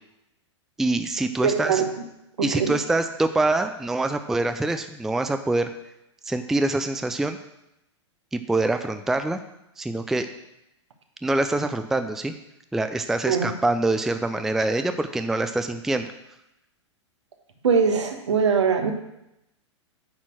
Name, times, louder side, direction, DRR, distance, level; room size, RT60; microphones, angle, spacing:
voice 1, 0.8-1.8 2.4-5.7 6.3-7.4 8.3-9.4 9.8-10.3 11.2-12.3 12.7-16.1, right 2 dB, ahead, 9 dB, 0.4 m, -25 dB
voice 2, 1.4-1.8 2.5-2.7 13.3-13.5 17.6-18.9, right 6 dB, 70° right, 4 dB, 1.4 m, -21 dB
9.5 x 4.3 x 6.1 m, 0.86 s
figure-of-eight pair, 105°, 15 cm